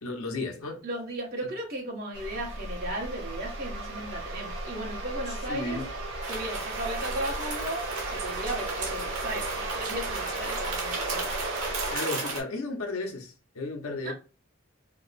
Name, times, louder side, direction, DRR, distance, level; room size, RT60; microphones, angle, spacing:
voice 1, 0.0-0.8 1.4-1.5 5.3-5.9 11.9-14.1, left 3 dB, 90° left, 0.8 m, -34 dB
voice 2, 0.8-5.8 6.3-11.3 14.0-14.1, right 1 dB, 45° right, 1.1 m, -36 dB
sound 1, 2.1-12.0, right 2 dB, 65° right, 0.8 m, -35 dB
sound 2, 6.2-12.4, right 3 dB, 90° right, 0.9 m, -35 dB
2.8 x 2.0 x 3.9 m
head